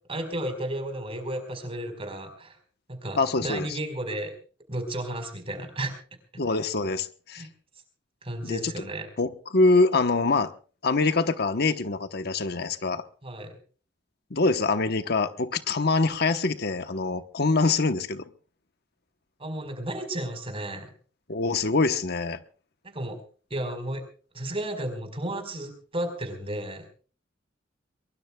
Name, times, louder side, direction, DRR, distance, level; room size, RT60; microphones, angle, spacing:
voice 1, 0.1-2.6 2.9-4.3 4.7-5.9 7.4-7.5 8.2-9.1 13.2-13.5 19.4-20.9 22.8-23.2 23.5-24.0 24.3-26.8, right 1 dB, 30° right, 6 dB, 4.8 m, -33 dB
voice 2, 3.2-3.8 6.4-7.4 8.4-8.9 9.2-10.5 10.8-13.0 14.3-18.2 21.3-22.4, left 3 dB, 60° left, 9 dB, 1.1 m, -24 dB
23.0 x 23.0 x 2.3 m, 0.39 s
head